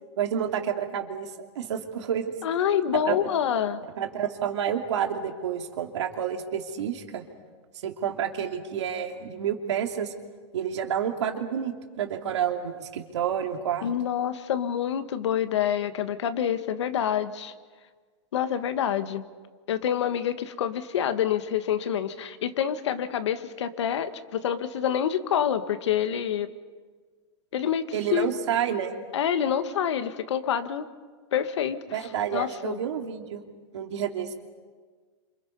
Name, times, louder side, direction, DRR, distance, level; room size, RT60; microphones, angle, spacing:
voice 1, 0.2-1.3 1.5-2.3 2.9-3.2 4.0-7.2 7.8-10.1 10.5-13.9 27.9-29.0 31.9-33.4 33.7-34.3, right 9 dB, 75° right, 3 dB, 3.0 m, -29 dB
voice 2, 2.4-3.8 13.8-17.5 18.3-19.2 19.7-26.5 27.5-27.8 28.1-28.3 29.1-30.8 31.3-31.8 32.3-32.8, left 9 dB, 75° left, 10 dB, 1.6 m, -27 dB
28.5 x 27.0 x 5.4 m, 1.5 s
supercardioid pair, 150°, 15 cm